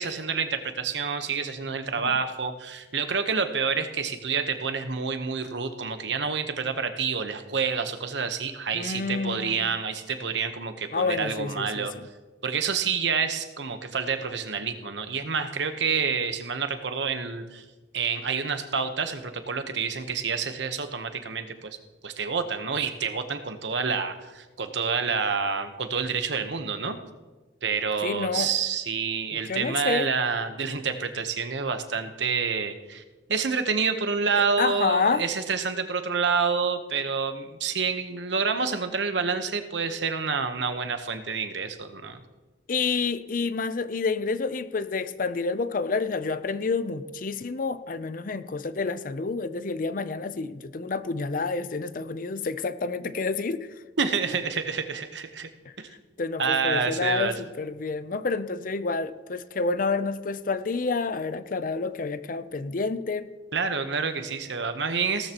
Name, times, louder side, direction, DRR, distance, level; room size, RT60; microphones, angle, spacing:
voice 1, 0.0-11.9 12.4-17.6 17.9-21.8 22.0-27.0 27.6-33.0 33.3-42.2 54.0-55.5 55.8-55.9 56.4-57.4 63.5-65.3, right 5 dB, 75° right, 8 dB, 1.0 m, -28 dB
voice 2, 8.7-9.7 10.9-11.9 28.0-28.5 29.3-30.1 34.6-35.2 42.7-53.7 56.2-63.3, left 4 dB, 45° left, 13 dB, 0.5 m, -29 dB
17.5 x 13.0 x 3.0 m, 1.2 s
head